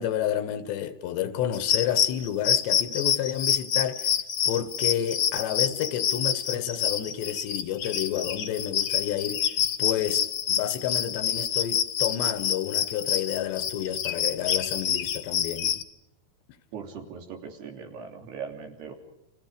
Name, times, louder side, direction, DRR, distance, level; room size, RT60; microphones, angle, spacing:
voice 1, 0.0-4.1 4.5-9.4 9.8-15.7, left 10 dB, 85° left, 3.7 m, -30 dB
sound 1, 1.5-15.8, left 9 dB, 60° left, 1.7 m, -27 dB
voice 2, 16.7-18.9, right 6 dB, 70° right, 5.1 m, -39 dB
30.0 x 27.5 x 5.2 m
omnidirectional pair, 4.9 m